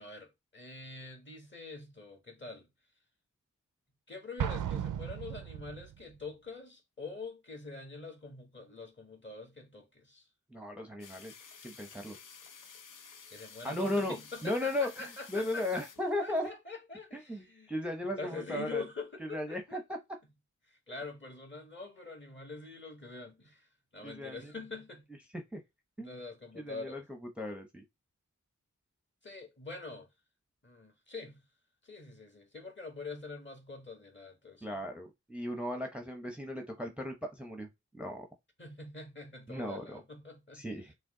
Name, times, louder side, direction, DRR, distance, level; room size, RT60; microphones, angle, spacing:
voice 1, 0.0-2.7 4.1-10.2 13.3-15.8 16.2-17.7 18.1-19.8 20.7-25.0 26.0-27.0 29.2-30.1 30.6-31.4 31.8-34.8 38.6-40.7, left 3 dB, 35° left, 1.8 m, -45 dB
Explosion, 4.4-6.0, right 10 dB, 85° right, 0.5 m, -35 dB
voice 2, 10.5-11.3 11.6-12.2 13.6-14.2 14.4-14.9 15.3-16.5 17.1-18.8 19.2-20.0 24.0-24.5 25.5-25.6 26.0-26.1 26.6-27.0 27.4-27.8 34.6-37.7 37.9-38.3 39.5-40.0 40.5-40.9, left 1 dB, 5° right, 0.7 m, -36 dB
sound 1, 11.0-16.5, left 6 dB, 80° left, 0.7 m, -53 dB
6.3 x 2.2 x 3.8 m
cardioid pair, 55°, 31 cm